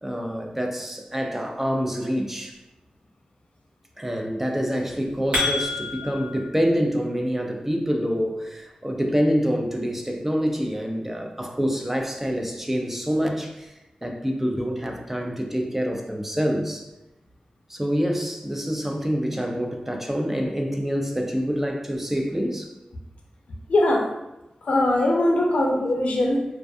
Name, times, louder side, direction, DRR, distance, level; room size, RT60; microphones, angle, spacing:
voice 1, 0.0-2.6 4.0-13.7 14.0-16.9 17.7-22.7, equal, 10° right, 2 dB, 0.3 m, -26 dB
sound 1, 4.9-6.4, left 3 dB, 70° right, 1.0 m, -27 dB
voice 2, 23.7-24.1 24.6-26.5, left 1 dB, 70° left, 0 dB, 0.5 m, -21 dB
2.3 x 2.2 x 2.5 m, 0.97 s
wide cardioid pair, 80°, 2 cm